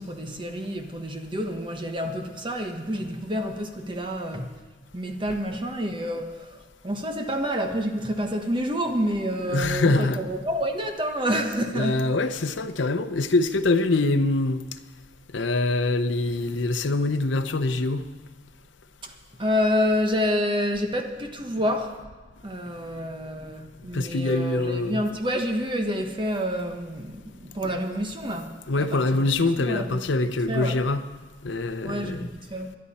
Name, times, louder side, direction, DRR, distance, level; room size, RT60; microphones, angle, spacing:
voice 1, 0.0-4.5 4.9-12.0 19.0-22.0 22.4-30.0 30.5-30.8 31.8-32.7, equal, 25° right, 4 dB, 1.1 m, -28 dB
voice 2, 9.5-10.2 11.7-14.6 15.3-18.0 23.9-25.0 27.6-27.8 28.7-31.0 31.4-32.2, left 2 dB, 75° left, 9 dB, 0.7 m, -24 dB
22.5 x 11.0 x 4.3 m, 1.3 s
head